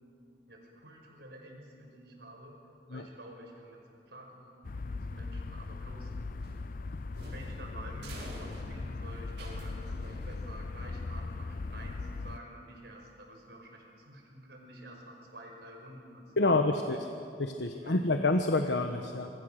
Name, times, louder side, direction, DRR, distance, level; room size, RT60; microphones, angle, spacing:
voice 1, 0.5-2.6 2.9-6.1 7.3-17.0 17.7-18.0, right 1 dB, 70° right, 1 dB, 5.5 m, -49 dB
sound 1, 4.6-12.4, left 3 dB, 50° left, 0.5 m, -39 dB
sound 2, 6.4-10.8, right 1 dB, 85° right, 6.9 m, -50 dB
voice 2, 16.4-17.0 17.4-19.3, left 2 dB, 90° left, 5 dB, 1.2 m, -28 dB
26.5 x 24.5 x 6.5 m, 2.6 s
head